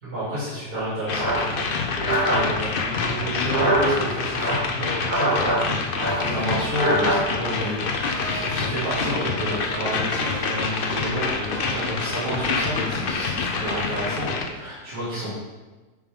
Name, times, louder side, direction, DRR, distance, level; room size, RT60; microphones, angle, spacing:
voice 1, 0.0-15.4, equal, 80° right, -11 dB, 3.1 m, -30 dB
sound 1, 0.7-2.4 3.3-3.9 4.3-5.6 5.9-7.2, right 1 dB, 20° right, 2.0 m, -24 dB
sound 2, 1.1-14.5, left 4 dB, 55° left, 0.6 m, -27 dB
sound 3, 6.0-9.2 9.5-13.2 13.5-14.0, right 2 dB, 60° right, 2.3 m, -41 dB
10.0 x 3.5 x 3.6 m, 1.2 s
omnidirectional pair, 1.6 m